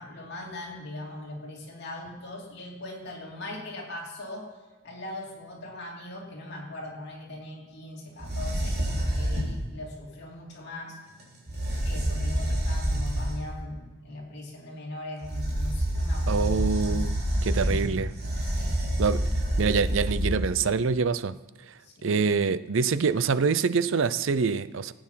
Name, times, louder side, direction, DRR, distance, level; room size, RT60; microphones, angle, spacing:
voice 1, 0.0-4.5 4.8-11.0 11.8-17.5 18.4-18.8 21.8-22.2, left 1 dB, 55° left, -2 dB, 3.0 m, -40 dB
sound 1, 8.2-9.6 11.2-11.3 11.5-13.5 15.2-20.6, equal, 50° right, 3.4 m, -27 dB
voice 2, 16.3-18.1 19.0-19.2 19.6-21.4 22.0-24.9, right 5 dB, 70° right, 15 dB, 0.5 m, -25 dB
17.0 x 8.8 x 5.8 m, 1.3 s
head